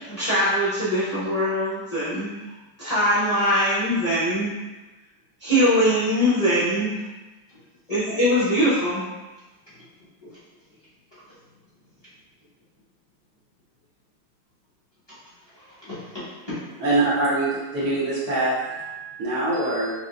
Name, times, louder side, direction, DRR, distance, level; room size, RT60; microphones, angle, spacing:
voice 1, 0.1-2.4 2.8-4.5 5.4-7.0 7.9-9.1, equal, 45° left, -12 dB, 0.5 m, -22 dB
voice 2, 15.5-16.8 18.6-19.3, equal, 20° left, -12 dB, 1.0 m, -38 dB
voice 3, 16.8-18.5 19.2-19.9, right 2 dB, 65° right, -8 dB, 1.1 m, -23 dB
4.8 x 2.0 x 2.4 m, 1.1 s
omnidirectional pair, 2.0 m